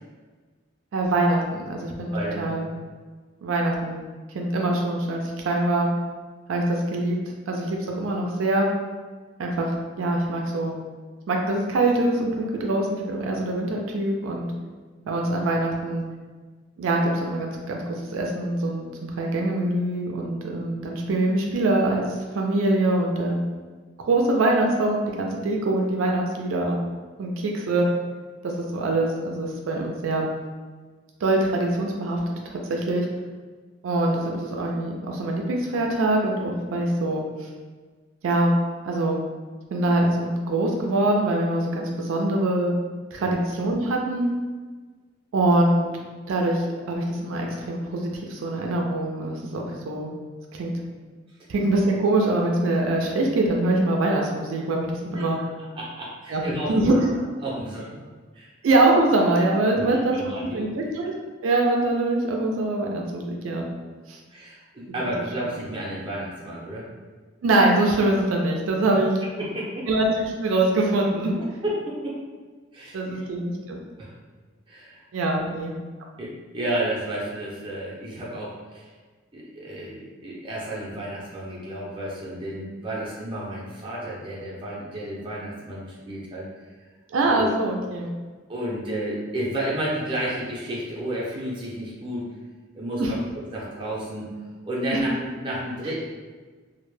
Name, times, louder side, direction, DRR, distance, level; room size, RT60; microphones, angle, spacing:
voice 1, 0.9-2.7 3.4-4.0 4.3-5.9 6.5-7.2 7.5-8.7 9.4-10.8 11.3-14.5 15.1-16.0 16.8-22.0 22.3-23.4 24.1-26.8 27.2-27.9 28.4-30.3 31.2-33.1 33.8-37.2 38.2-38.6 38.8-39.2 39.7-42.8 43.1-44.3 45.3-45.9 46.3-50.1 50.5-50.7 51.5-55.4 56.3-56.4 56.7-57.0 58.6-60.1 60.5-61.1 61.4-63.7 64.1-64.2 65.4-65.5 67.4-69.2 69.9-71.3 72.9-73.8 75.1-75.7 87.1-88.1 93.0-93.1 94.9-95.0, right 2 dB, 85° right, 0 dB, 0.4 m, -24 dB
voice 2, 2.1-2.6 43.2-43.3 55.1-55.3 55.6-57.0 57.4-58.0 58.3-58.5 59.7-60.7 64.3-66.9 68.9-69.0 69.4-69.9 71.6-72.2 72.7-73.2 74.0-74.1 74.7-75.0 76.2-78.8 79.3-86.5 87.3-87.5 88.5-92.3 92.7-94.3 94.6-96.1, right 1 dB, 25° right, -5 dB, 0.5 m, -31 dB
2.1 x 2.0 x 3.1 m, 1.4 s
head